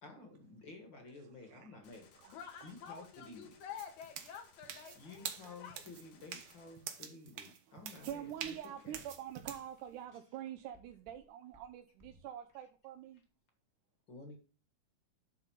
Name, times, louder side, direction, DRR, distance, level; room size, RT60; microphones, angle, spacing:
voice 1, 0.0-2.1 2.6-3.6 4.9-8.6 8.8-9.0 14.1-14.4, left 3 dB, 45° left, 4 dB, 1.9 m, -52 dB
voice 2, 1.1-1.8 2.2-2.4 7.4-13.2, right 10 dB, 90° right, 5 dB, 2.2 m, -46 dB
Gunshot gunfire, 1.8-6.8, left 6 dB, 90° left, 2.9 m, -64 dB
voice 3, 2.3-5.8, left 8 dB, 75° left, 6 dB, 2.7 m, -49 dB
sound 1, 3.8-9.7, right 8 dB, 60° right, 1.6 m, -46 dB
sound 2, 8.0-11.2 11.5-12.5, equal, 10° right, 0.8 m, -65 dB
10.0 x 4.1 x 7.1 m, 0.37 s
omnidirectional pair, 3.5 m